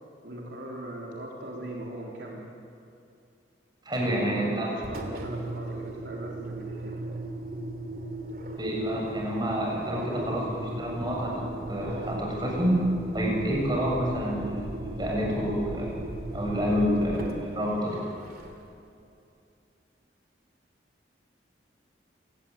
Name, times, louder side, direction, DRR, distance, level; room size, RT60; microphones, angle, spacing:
voice 1, 0.2-2.5 4.3-7.0 17.8-17.9, right 1 dB, 70° right, -2 dB, 3.7 m, -40 dB
voice 2, 3.8-4.7 8.6-12.8 13.1-15.9 16.3-18.0, equal, 25° right, -2 dB, 7.4 m, -28 dB
Engine, 4.8-18.8, right 1 dB, 50° right, 3.0 m, -37 dB
28.5 x 18.5 x 8.5 m, 2.6 s
head